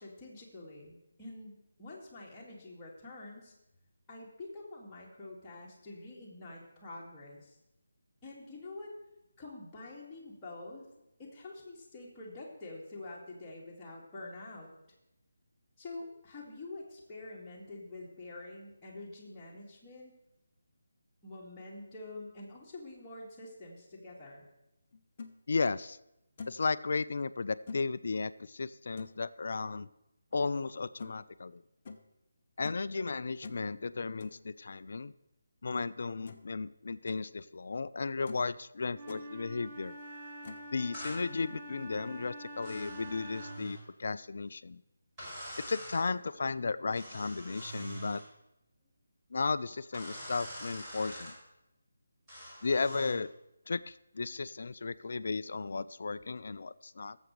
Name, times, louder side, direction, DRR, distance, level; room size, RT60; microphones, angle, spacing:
voice 1, 0.0-3.5 4.1-7.5 8.2-8.9 9.4-10.8 11.2-14.7 15.8-20.1 21.2-24.5, left 2 dB, 15° left, -6 dB, 2.2 m, -47 dB
sound 1, 24.9-25.3 25.9-26.0 26.4-26.7 27.7-27.9 29.0-29.2 31.0-31.1 31.8-32.1 32.6-32.9 33.4-33.7 34.2-34.4 35.8-35.9 36.2-36.5 36.9-37.2 37.8-37.9 38.3-38.5 38.8-39.3 40.4-40.7, left 4 dB, 35° left, 0.7 m, -45 dB
voice 2, 25.5-26.0 26.5-29.9 30.3-31.6 32.6-35.1 35.6-40.0 40.7-44.8 45.7-48.2 49.3-51.4 52.6-53.3 53.7-57.2, left 4 dB, 50° left, 16 dB, 0.4 m, -34 dB
Wind instrument woodwind instrument, 38.9-43.8, equal, 30° right, 1.5 m, -46 dB
sound 2, 40.9-41.2 42.6-43.8 45.2-46.0 46.9-48.3 49.9-51.4 52.3-53.2, right 1 dB, 15° right, 4.9 m, -45 dB
18.0 x 7.3 x 3.3 m, 0.88 s
figure-of-eight pair, 155°, 0 cm